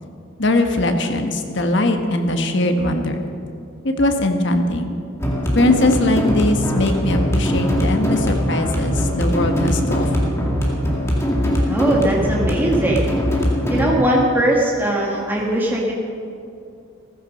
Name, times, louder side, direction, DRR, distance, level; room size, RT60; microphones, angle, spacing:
voice 1, 0.4-3.2 3.8-4.9 5.5-10.1, left 1 dB, 55° left, 5 dB, 1.3 m, -20 dB
sound 1, 5.2-13.8, equal, 15° left, 2.1 m, -21 dB
voice 2, 11.7-13.1 13.7-15.9, right 1 dB, 10° right, -3 dB, 1.8 m, -19 dB
15.0 x 14.5 x 5.4 m, 2.5 s
head